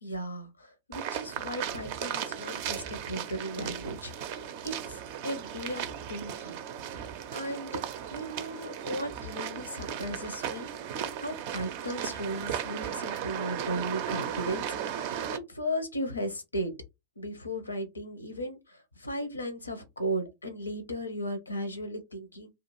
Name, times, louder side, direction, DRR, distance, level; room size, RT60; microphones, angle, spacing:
voice 1, 0.0-6.6 6.9-7.8 8.1-10.7 11.2-16.7 17.2-22.5, equal, 80° left, 0.6 m, -36 dB
sound 1, 0.9-15.4, right 9 dB, 50° right, 0.4 m, -36 dB
2.4 x 2.3 x 2.9 m
figure-of-eight pair, 90°, 0 cm